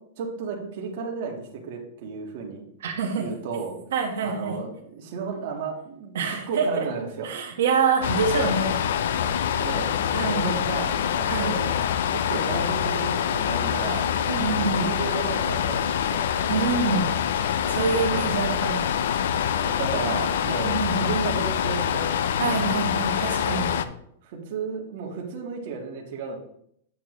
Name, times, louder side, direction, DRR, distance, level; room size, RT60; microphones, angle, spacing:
voice 1, 0.2-2.7 3.2-3.8 4.2-6.2 6.5-7.3 9.6-9.9 10.3-11.7 12.1-14.1 14.5-16.2 18.0-18.2 19.6-22.2 23.7-26.4, right 5 dB, 45° right, -1 dB, 1.7 m, -33 dB
voice 2, 2.8-3.3 3.9-4.6 6.1-6.9 7.2-8.7 10.1-10.5 11.3-11.5 14.3-14.9 16.5-17.1 17.7-18.9 20.5-21.1 22.4-23.7, right 5 dB, 75° right, 0 dB, 1.5 m, -26 dB
sound 1, 8.0-23.9, left 8 dB, 65° left, 0.5 m, -25 dB
9.1 x 6.9 x 3.2 m, 0.69 s
supercardioid pair, 170°, 0 cm